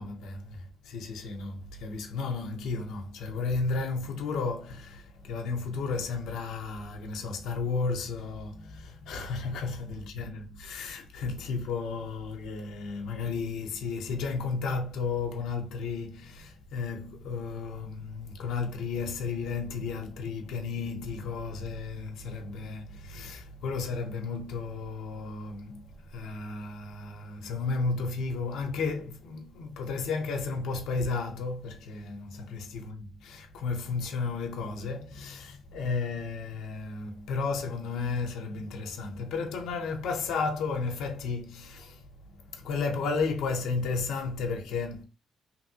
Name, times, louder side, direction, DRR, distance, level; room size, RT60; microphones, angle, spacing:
voice 1, 0.0-45.0, left 4 dB, 85° left, 0.6 m, -33 dB
3.0 x 2.6 x 2.7 m
cardioid pair, 115°, 0 cm